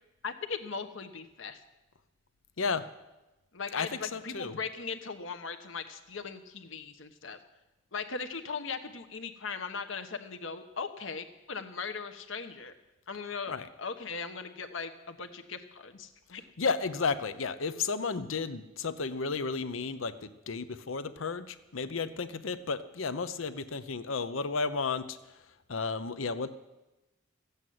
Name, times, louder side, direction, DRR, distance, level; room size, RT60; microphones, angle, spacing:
voice 1, 0.2-1.6 3.5-7.4 7.9-12.7 13.1-16.4, left 5 dB, 70° left, 7 dB, 1.1 m, -39 dB
voice 2, 2.6-2.9 3.7-4.6 13.5-13.7 16.6-26.5, left 4 dB, 90° left, 12 dB, 0.8 m, -33 dB
14.5 x 8.2 x 9.4 m, 1.0 s
head